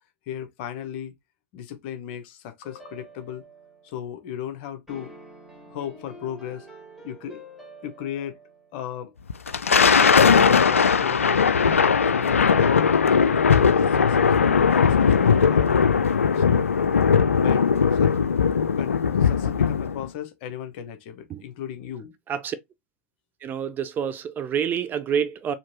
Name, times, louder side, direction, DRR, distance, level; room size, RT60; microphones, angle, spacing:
voice 1, 0.3-1.1 1.5-3.4 3.8-5.1 5.7-6.7 7.0-7.4 7.8-8.4 8.7-9.2 10.0-15.9 16.4-16.7 17.2-18.3 18.7-22.1, left 10 dB, 50° left, 1.0 m, -36 dB
sound 1, 2.6-4.0 4.9-8.8 9.7-10.3, right 1 dB, ahead, 2.4 m, -47 dB
Thunder, 9.3-20.1, left 6 dB, 75° left, 0.4 m, -19 dB
voice 2, 23.4-25.5, right 8 dB, 25° right, 0.5 m, -27 dB
4.3 x 2.9 x 3.0 m
figure-of-eight pair, 90°, 7 cm